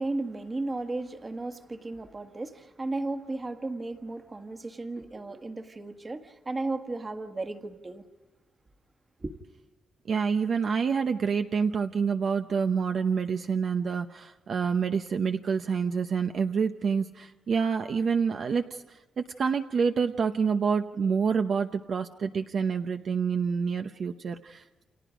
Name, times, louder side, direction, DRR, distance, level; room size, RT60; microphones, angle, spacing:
voice 1, 0.0-8.0 9.2-9.3, right 2 dB, 20° right, 1.6 m, -34 dB
voice 2, 10.1-24.8, right 6 dB, 45° right, 0.8 m, -27 dB
29.5 x 28.5 x 5.1 m
wide cardioid pair, 175°, 0 cm